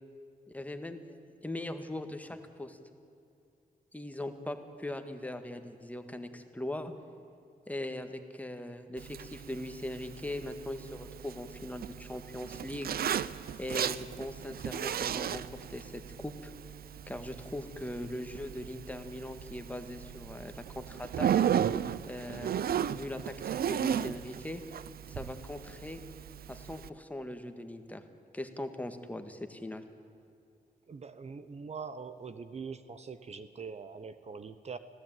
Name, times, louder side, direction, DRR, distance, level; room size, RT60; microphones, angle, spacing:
voice 1, 0.5-1.2 1.4-2.8 3.9-6.9 7.7-12.9 13.6-16.5 17.1-21.3 22.1-22.5 22.8-24.6 25.1-26.0 26.5-28.0 28.3-29.8, left 1 dB, 10° left, 7 dB, 1.8 m, -40 dB
Zipper (clothing), 9.0-26.9, right 9 dB, 85° right, 0.7 m, -35 dB
voice 2, 30.9-34.8, right 5 dB, 45° right, 12 dB, 1.0 m, -43 dB
25.5 x 17.0 x 9.2 m, 2.6 s
wide cardioid pair, 120°, 15 cm